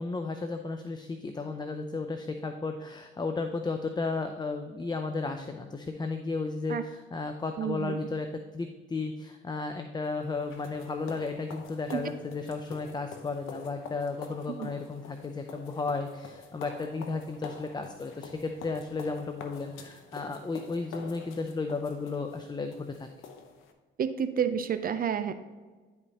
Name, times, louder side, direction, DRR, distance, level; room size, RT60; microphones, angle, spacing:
voice 1, 0.0-8.3 8.5-23.1, left 3 dB, 20° left, 6 dB, 0.5 m, -34 dB
voice 2, 7.6-8.0 11.9-12.0 14.5-14.7 24.0-25.3, right 8 dB, 45° right, 10 dB, 0.5 m, -30 dB
sound 1, 10.0-23.7, left 5 dB, 90° left, 0.8 m, -47 dB
11.0 x 5.1 x 2.9 m, 1.4 s
cardioid pair, 90°, 20 cm